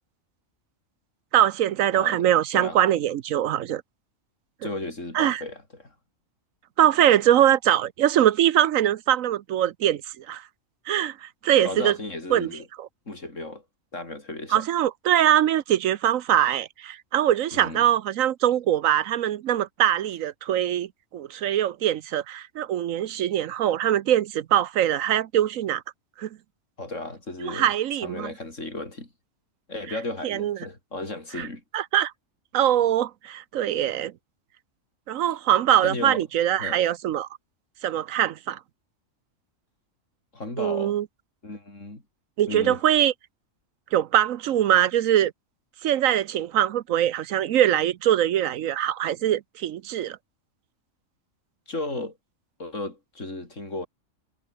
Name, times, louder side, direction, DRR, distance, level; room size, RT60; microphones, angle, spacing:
voice 1, 1.3-3.8 5.1-5.4 6.8-10.4 10.9-12.0 12.3-12.5 12.8-12.9 14.5-25.8 26.2-26.3 27.4-28.3 30.2-30.6 31.4-31.5 31.7-32.1 32.5-34.1 35.1-37.3 37.8-38.6 40.6-41.0 42.4-43.1 43.9-45.3 45.8-50.2, right 11 dB, 80° right, 1.1 m, -22 dB
voice 2, 1.9-2.8 4.6-5.9 11.6-12.7 13.1-13.6 13.9-14.6 17.5-17.9 26.8-27.7 28.0-29.1 29.7-31.6 35.2-35.3 35.8-36.2 36.6-36.8 40.3-41.0 41.4-42.0 42.5-42.8 51.7-52.2 52.6-53.9, left 2 dB, 65° left, 5.5 m, -34 dB
omnidirectional pair, 1.4 m